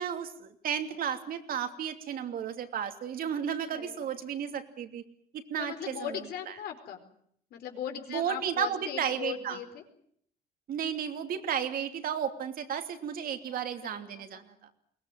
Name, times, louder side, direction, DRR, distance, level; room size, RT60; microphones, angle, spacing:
voice 1, 0.0-5.0 5.3-6.2 8.1-9.6 10.7-14.7, right 8 dB, 60° right, 7 dB, 2.9 m, -33 dB
voice 2, 3.7-4.1 5.6-7.0 7.5-9.8 13.5-14.4, left 8 dB, 70° left, 5 dB, 4.6 m, -39 dB
22.5 x 19.0 x 9.2 m, 0.66 s
cardioid pair, 110°, 17 cm